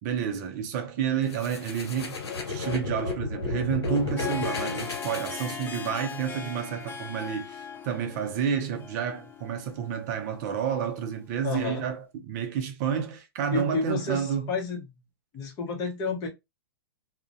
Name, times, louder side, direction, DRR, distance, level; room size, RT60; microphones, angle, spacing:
voice 1, 0.0-2.2 2.5-14.5, right 8 dB, 45° right, 0.5 m, -30 dB
sound 1, 1.3-6.2, left 4 dB, 90° left, 0.8 m, -33 dB
Harp, 3.9-11.6, left 6 dB, 15° left, 0.4 m, -40 dB
voice 2, 11.4-11.8 13.5-14.8 15.3-16.3, left 4 dB, 30° left, 0.9 m, -30 dB
2.4 x 2.1 x 2.6 m
hypercardioid pair, 130°, 13 cm